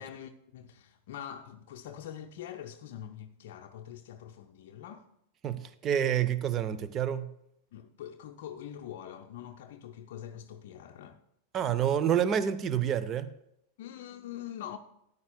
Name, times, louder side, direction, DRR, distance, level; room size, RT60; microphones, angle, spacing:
voice 1, 0.0-5.1 7.7-11.2 13.8-14.8, left 10 dB, 55° left, 0.5 m, -44 dB
voice 2, 5.4-7.3 11.5-13.3, right 9 dB, 30° right, 0.6 m, -28 dB
13.5 x 9.7 x 2.2 m
figure-of-eight pair, 90°, 0 cm